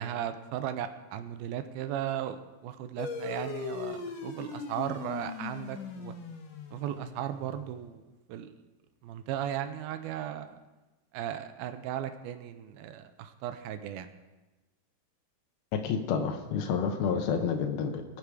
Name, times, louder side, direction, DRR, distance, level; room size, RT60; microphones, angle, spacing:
voice 1, 0.0-6.1 6.7-8.0 8.3-8.5 9.0-10.6 11.1-14.1, right 10 dB, 85° right, 10 dB, 2.5 m, -36 dB
sound 1, 3.0-7.9, left 5 dB, 65° left, 1.7 m, -40 dB
voice 2, 15.7-18.0, left 6 dB, 85° left, 5 dB, 2.8 m, -29 dB
19.5 x 6.9 x 4.8 m, 1.2 s
omnidirectional pair, 4.3 m